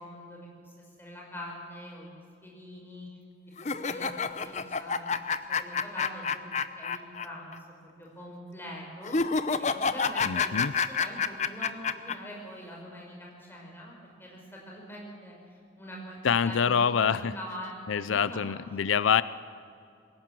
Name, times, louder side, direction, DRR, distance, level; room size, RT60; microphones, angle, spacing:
voice 1, 0.0-3.1 3.6-5.1 5.5-7.5 7.8-9.2 9.6-18.5, equal, 10° left, -2 dB, 5.4 m, -44 dB
sound 1, 3.6-7.3 7.5-7.6 9.0-12.1, left 5 dB, 35° left, 0.7 m, -28 dB
voice 2, 10.2-10.7 16.2-17.3 17.9-19.2, left 7 dB, 90° left, 16 dB, 0.5 m, -25 dB
21.0 x 17.5 x 7.5 m, 2.4 s
head